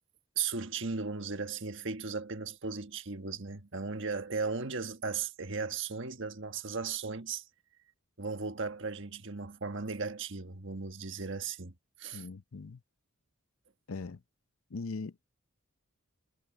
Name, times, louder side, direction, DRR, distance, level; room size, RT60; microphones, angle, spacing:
voice 1, 0.4-7.4 8.2-11.7 12.0-12.2, right 4 dB, 60° right, 1.5 m, -36 dB
voice 2, 12.1-12.8 13.9-14.2 14.7-15.2, left 4 dB, 75° left, 0.6 m, -40 dB
head